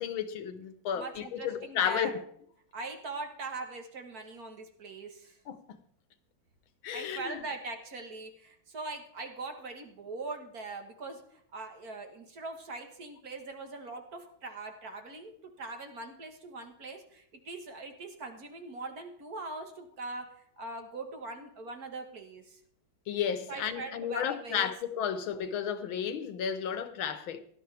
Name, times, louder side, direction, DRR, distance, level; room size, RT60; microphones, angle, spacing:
voice 1, 0.0-2.2 5.5-5.8 6.8-7.4 23.1-27.4, left 8 dB, 85° left, 1.8 m, -33 dB
voice 2, 1.0-2.2 2.7-5.4 6.9-20.3 20.6-22.6 23.5-24.7, right 3 dB, 50° right, 1.8 m, -41 dB
17.5 x 11.5 x 3.4 m
omnidirectional pair, 2.2 m